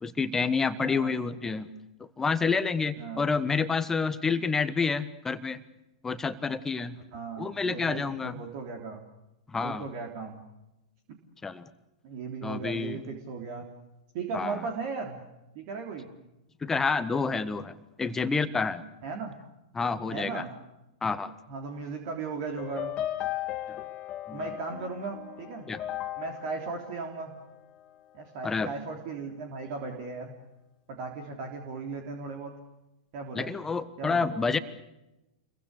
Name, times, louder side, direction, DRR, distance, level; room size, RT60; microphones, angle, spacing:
voice 1, 0.0-1.7 2.2-5.6 6.0-7.0 7.4-8.3 9.5-9.8 11.4-11.7 12.4-13.0 14.3-14.6 16.6-18.8 19.7-20.4 21.0-21.3 23.7-23.8 24.3-24.4 25.7-25.8 28.4-28.7 33.3-34.6, left 4 dB, 15° left, 12 dB, 1.3 m, -28 dB
voice 2, 0.8-1.2 3.0-3.3 7.1-9.0 9.6-10.4 12.0-13.7 14.1-15.2 15.6-16.1 19.0-19.3 20.1-20.5 21.5-22.9 24.3-25.7 26.1-27.3 28.1-30.3 30.9-32.5 33.1-33.5 34.0-34.4, right 4 dB, 45° right, 3 dB, 3.5 m, -37 dB
sound 1, 22.6-27.9, left 13 dB, 30° left, 1.8 m, -37 dB
28.5 x 23.0 x 6.8 m, 0.95 s
figure-of-eight pair, 100°, 3 cm